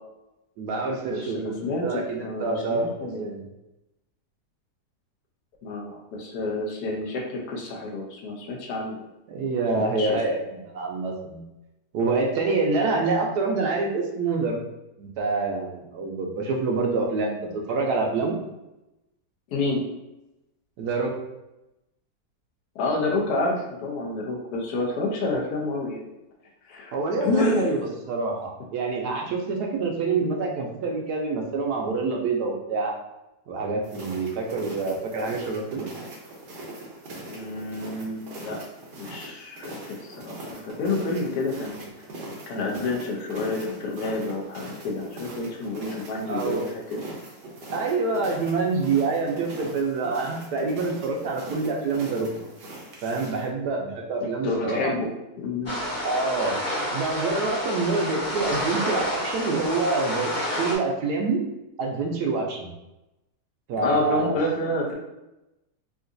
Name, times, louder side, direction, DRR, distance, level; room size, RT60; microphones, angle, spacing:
voice 1, 0.6-3.4 9.3-11.4 11.9-14.6 15.0-18.4 20.8-21.2 26.9-32.9 33.5-35.9 46.3-46.7 47.7-52.3 53.0-54.9 56.0-56.5 56.9-60.3 60.6-61.4 61.8-62.7 63.7-64.3, right 3 dB, 80° right, 0 dB, 1.1 m, -26 dB
voice 2, 1.1-3.2 5.6-9.0 9.8-10.2 19.5-19.8 22.7-26.0 26.7-26.9 27.2-27.9 37.3-38.6 39.0-41.9 42.5-47.0 54.4-55.1 55.4-55.7 63.8-64.9, left 2 dB, 75° left, -2 dB, 1.2 m, -29 dB
sound 1, 33.8-53.5, right 1 dB, 50° right, 0.7 m, -41 dB
sound 2, 55.7-60.8, equal, 40° left, 0.8 m, -29 dB
3.8 x 2.4 x 2.5 m, 0.95 s
omnidirectional pair, 1.7 m